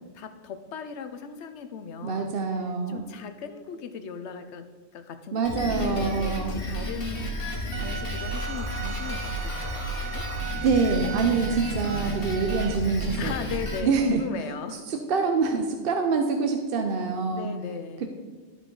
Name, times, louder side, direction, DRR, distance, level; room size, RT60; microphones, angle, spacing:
voice 1, 0.1-2.3 2.9-4.7 4.9-10.3 13.2-14.8 17.3-18.1, left 6 dB, 85° left, 9 dB, 1.0 m, -37 dB
voice 2, 2.0-3.1 5.3-6.6 10.6-13.3 13.8-14.2 14.9-17.5 18.0-18.1, right 4 dB, 60° right, 5 dB, 0.8 m, -25 dB
Drum kit, 5.4-13.8, equal, 55° left, 1.5 m, -32 dB
Bowed string instrument, 7.7-12.7, right 8 dB, 85° right, 1.0 m, -38 dB
12.0 x 4.9 x 3.8 m, 1.4 s
omnidirectional pair, 1.1 m